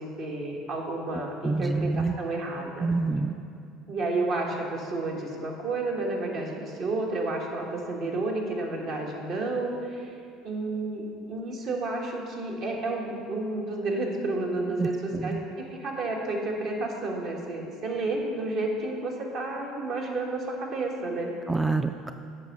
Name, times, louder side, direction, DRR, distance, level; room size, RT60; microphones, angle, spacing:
voice 1, 0.0-2.9 3.9-10.2 10.4-21.3, right 2 dB, 60° right, 0 dB, 1.6 m, -31 dB
voice 2, 1.4-2.2 2.8-3.3 14.8-15.4 21.5-22.1, right 3 dB, 10° right, 8 dB, 0.3 m, -27 dB
8.6 x 5.5 x 5.9 m, 2.4 s
supercardioid pair, 105°, 0 cm